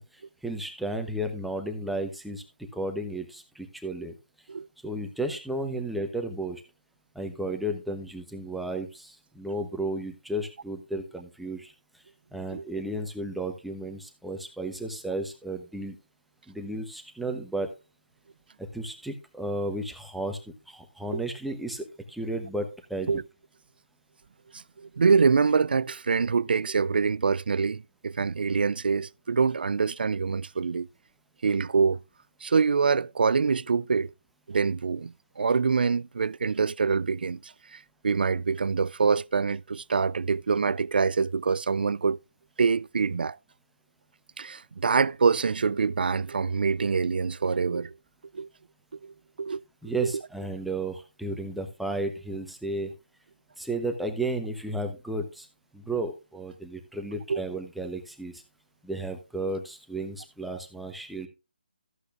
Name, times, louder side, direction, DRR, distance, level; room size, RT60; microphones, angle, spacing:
voice 1, 0.0-4.1 4.8-6.6 7.1-11.7 12.3-16.0 16.5-17.7 18.6-20.4 20.7-23.1 49.8-52.9 53.6-55.5 55.7-58.4 58.8-61.3, right 2 dB, ahead, 0.9 m, -33 dB
voice 2, 24.5-30.9 31.4-32.0 32.4-34.1 34.5-42.2 42.6-43.4 44.4-47.9 48.3-48.5 49.0-49.6 50.0-50.1 57.3-57.4, right 5 dB, 60° right, 0.4 m, -25 dB
14.0 x 8.2 x 2.5 m
figure-of-eight pair, 160°, 6 cm